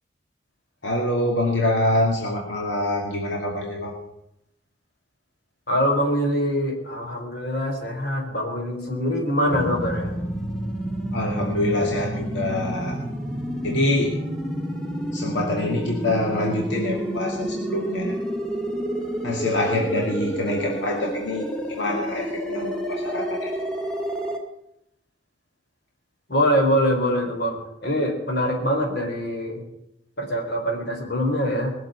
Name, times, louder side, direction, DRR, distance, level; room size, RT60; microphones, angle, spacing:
voice 1, 0.8-3.9 11.1-13.0 13.6-14.2 15.1-18.2 19.2-23.5, left 1 dB, 85° left, -1 dB, 2.4 m, -25 dB
voice 2, 5.7-10.1 26.3-29.6 30.2-31.7, equal, 60° left, 1 dB, 4.0 m, -24 dB
sound 1, 9.5-24.4, equal, 5° left, 2.1 m, -29 dB
20.5 x 7.3 x 8.0 m, 0.81 s
head